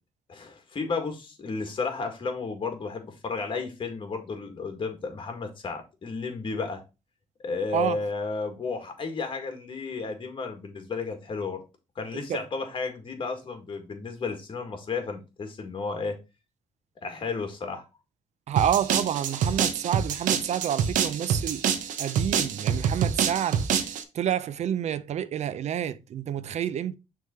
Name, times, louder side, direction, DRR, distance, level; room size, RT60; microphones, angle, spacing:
voice 1, 0.3-6.8 7.4-11.6 12.0-16.2 17.0-17.8, left 4 dB, 40° left, 1.9 m, -33 dB
voice 2, 18.5-23.7 24.1-27.0, right 10 dB, 60° right, 0.5 m, -29 dB
sound 1, 18.6-24.0, right 8 dB, 90° right, 0.8 m, -26 dB
6.3 x 3.5 x 4.3 m
cardioid pair, 95°, 13 cm